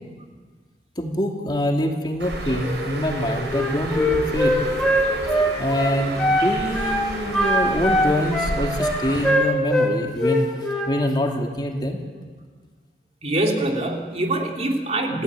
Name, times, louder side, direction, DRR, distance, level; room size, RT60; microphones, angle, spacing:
voice 1, 1.0-4.6 5.6-12.0, equal, 25° left, 2 dB, 2.7 m, -25 dB
Bird, 2.2-9.3, right 1 dB, 80° right, 5.8 m, -31 dB
Wind instrument woodwind instrument, 3.5-6.5 6.7-7.0 7.3-9.9 10.2-10.9, equal, 5° left, 5.4 m, -21 dB
voice 2, 13.2-15.2, right 1 dB, 35° right, 2 dB, 3.1 m, -24 dB
28.0 x 16.5 x 9.6 m, 1.5 s
head